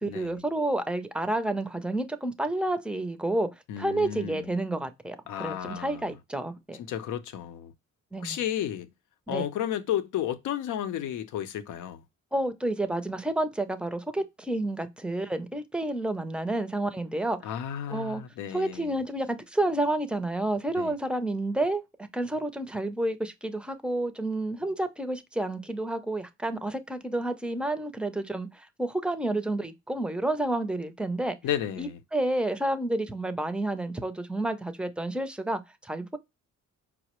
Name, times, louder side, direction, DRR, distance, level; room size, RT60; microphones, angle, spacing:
voice 1, 0.0-3.5 3.8-6.8 8.1-8.4 9.3-9.5 12.3-17.4 17.9-18.2 18.5-21.8 22.1-31.3 31.8-36.2, right 1 dB, 5° right, 0.5 m, -30 dB
voice 2, 3.7-4.4 5.3-6.1 6.8-7.7 8.2-8.9 9.3-12.0 17.4-18.9 20.8-20.9 31.4-32.0, left 10 dB, 80° left, 0.6 m, -32 dB
4.8 x 2.0 x 2.9 m
cardioid pair, 90°, 30 cm